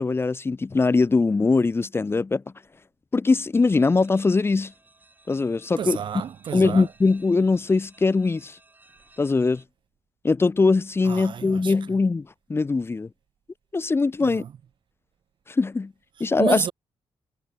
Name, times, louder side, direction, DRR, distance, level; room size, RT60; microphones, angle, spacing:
voice 1, 0.0-2.4 3.1-4.7 5.3-6.0 6.5-8.6 9.2-9.6 10.2-13.1 13.7-14.4 15.5-15.9 16.2-16.6, left 3 dB, 25° left, 0.6 m, -21 dB
sound 1, 3.5-9.7, right 2 dB, 15° right, 5.5 m, -57 dB
voice 2, 5.8-6.9 11.0-11.7 14.2-14.5 16.4-16.7, right 8 dB, 50° right, 0.3 m, -30 dB
wide cardioid pair, 125°, 10 cm